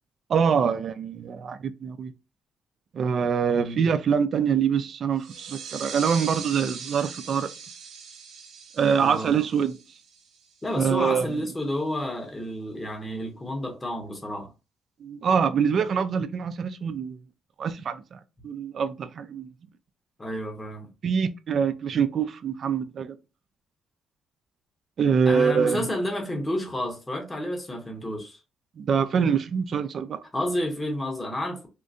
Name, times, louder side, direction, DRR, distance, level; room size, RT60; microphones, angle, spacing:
voice 1, 0.3-2.1 2.9-7.5 8.8-9.7 10.7-11.3 15.0-17.2 17.6-19.5 21.0-23.2 25.0-25.9 28.8-30.2, right 6 dB, 55° right, 0.4 m, -25 dB
sound 1, 5.2-10.5, right 6 dB, 80° right, 0.8 m, -40 dB
voice 2, 9.0-9.4 10.6-14.5 20.2-20.9 25.2-28.4 30.3-31.7, left 1 dB, 20° left, 1.0 m, -30 dB
3.6 x 2.1 x 2.6 m
cardioid pair, 90°, 0 cm